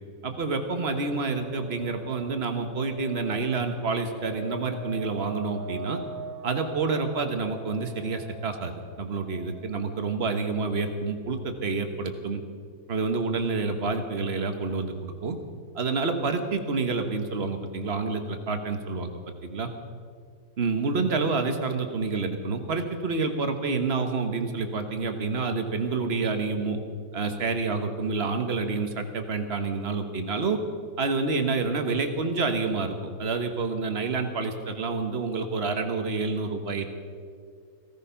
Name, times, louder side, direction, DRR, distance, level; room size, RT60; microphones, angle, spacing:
voice 1, 0.2-6.0 6.4-12.4 12.9-15.4 15.7-19.1 19.4-19.7 20.6-26.8 27.1-30.6 31.0-37.0, right 4 dB, 40° right, 6 dB, 1.3 m, -28 dB
sound 1, 0.8-10.1, right 3 dB, 60° right, 1.6 m, -42 dB
16.0 x 15.0 x 5.7 m, 2.2 s
omnidirectional pair, 1.9 m